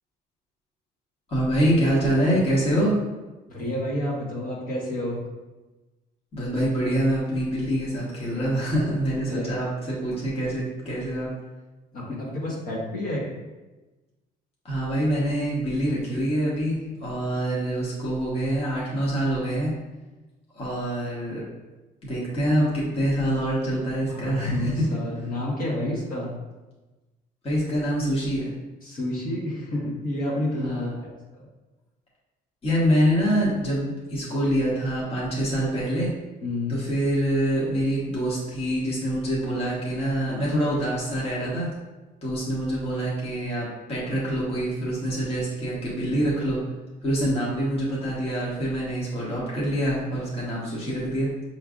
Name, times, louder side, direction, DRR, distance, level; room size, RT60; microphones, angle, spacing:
voice 1, 1.3-2.9 6.3-11.3 14.6-19.7 20.5-21.4 22.0-24.8 27.4-28.5 30.6-30.9 32.6-36.1 36.7-41.7 42.2-46.6 47.0-51.3, equal, 35° left, -6 dB, 1.3 m, -25 dB
voice 2, 3.5-5.2 9.3-9.5 11.9-13.3 24.1-26.3 28.8-30.9 31.3-31.4 36.4-36.8, left 1 dB, 55° left, -5 dB, 1.5 m, -29 dB
5.9 x 3.2 x 2.5 m, 1.1 s
cardioid pair, 110°, 17 cm